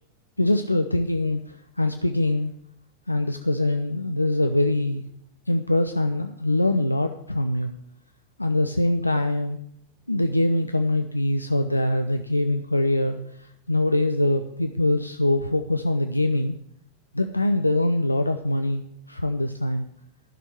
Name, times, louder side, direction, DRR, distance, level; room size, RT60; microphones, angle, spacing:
voice 1, 0.4-2.5 3.1-5.0 5.5-7.7 8.4-9.6 10.1-16.6 17.1-19.9, left 1 dB, 85° left, 7 dB, 0.6 m, -23 dB
12.0 x 6.3 x 9.1 m, 0.73 s
figure-of-eight pair, 90°, 0 cm